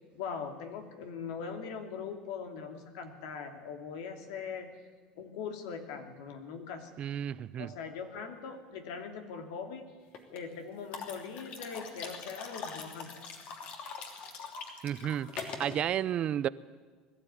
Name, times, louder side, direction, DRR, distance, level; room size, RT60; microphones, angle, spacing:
voice 1, 0.1-4.7 5.1-6.9 7.6-9.9 10.3-13.2, left 6 dB, 80° left, 5 dB, 2.8 m, -41 dB
voice 2, 7.0-7.7 14.8-16.5, right 10 dB, 45° right, 17 dB, 0.6 m, -32 dB
sound 1, 10.1-10.4 10.9-15.8, left 5 dB, 55° left, 3.0 m, -42 dB
21.0 x 13.0 x 9.7 m, 1.4 s
supercardioid pair, 110°, 3 cm